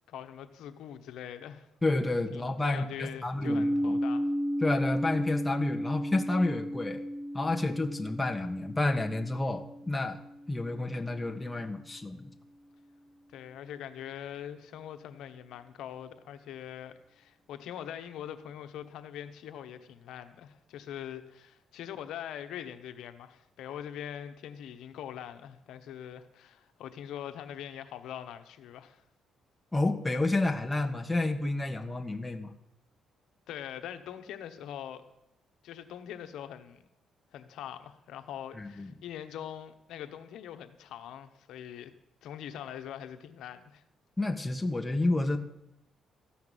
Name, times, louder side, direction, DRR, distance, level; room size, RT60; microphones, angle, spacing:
voice 1, 0.1-1.7 2.3-4.3 13.3-29.0 33.5-35.0 35.6-36.8 37.3-41.9 42.2-43.8, left 10 dB, 85° left, 9 dB, 1.1 m, -43 dB
voice 2, 1.8-4.0 4.6-7.0 7.3-10.2 10.5-12.3 29.7-32.5 38.6-38.9 44.2-45.4, left 2 dB, 10° left, 3 dB, 1.4 m, -30 dB
sound 1, 3.4-11.2, equal, 85° right, 2.9 m, -34 dB
14.5 x 5.9 x 9.8 m, 0.81 s
cardioid pair, 90°, 0 cm